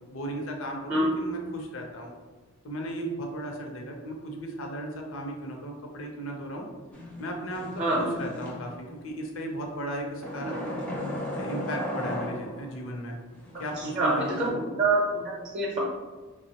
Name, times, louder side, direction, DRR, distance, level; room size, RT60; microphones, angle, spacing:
voice 1, 0.1-2.1 2.6-6.7 7.2-13.2 13.6-14.6, right 1 dB, 65° left, 1 dB, 0.5 m, -36 dB
sound 1, 6.9-9.0 10.2-12.9 13.4-14.5, equal, 5° left, 0.4 m, -36 dB
voice 2, 13.9-14.5 14.8-15.8, right 2 dB, 40° right, -3 dB, 0.6 m, -25 dB
3.3 x 2.0 x 2.8 m, 1.3 s
head